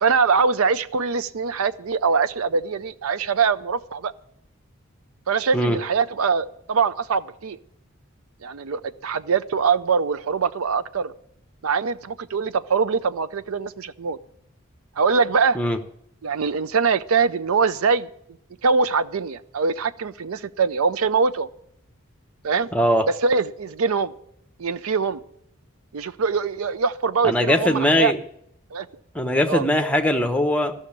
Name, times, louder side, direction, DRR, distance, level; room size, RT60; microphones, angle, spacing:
voice 1, 0.0-4.1 5.3-7.6 8.4-11.1 11.6-14.2 15.0-15.6 16.2-18.1 18.6-21.5 22.4-22.7 23.2-24.1 24.6-25.2 25.9-28.1 28.7-28.9 29.5-29.6, right 5 dB, 80° right, 15 dB, 0.5 m, -23 dB
voice 2, 22.7-23.1 27.2-28.2 29.1-30.7, left 1 dB, 5° left, 5 dB, 0.9 m, -20 dB
14.0 x 6.3 x 8.6 m, 0.71 s
head